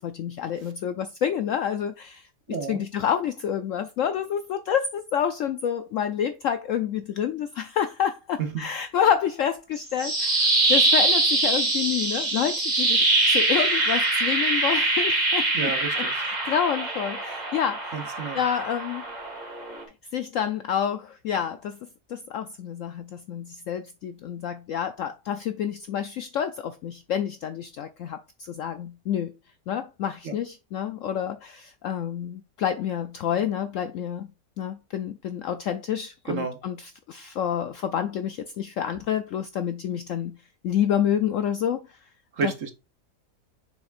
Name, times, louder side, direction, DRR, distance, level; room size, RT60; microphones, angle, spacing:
voice 1, 0.0-17.9 18.3-19.0 20.1-21.8 22.1-29.3 29.7-34.3 34.6-40.3 40.6-41.8 42.4-42.5, left 9 dB, 70° left, 0.7 m, -28 dB
voice 2, 2.5-2.8 8.4-8.6 15.5-16.2 17.9-18.4 30.2-30.3 36.3-36.6 42.3-42.7, right 5 dB, 55° right, 1.3 m, -30 dB
sound 1, 9.8-19.8, right 2 dB, 25° right, 1.9 m, -24 dB
7.0 x 5.8 x 2.5 m
omnidirectional pair, 1.8 m